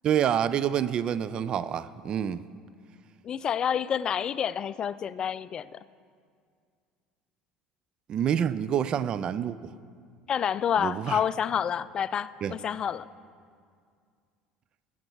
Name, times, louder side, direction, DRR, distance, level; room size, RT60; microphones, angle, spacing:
voice 1, 0.0-2.4 8.1-9.7 10.8-11.2 12.4-12.5, right 9 dB, 45° right, 0.3 m, -27 dB
voice 2, 3.2-5.8 10.3-13.1, left 8 dB, 40° left, 0.3 m, -28 dB
16.0 x 7.3 x 4.6 m
hypercardioid pair, 70°, 2 cm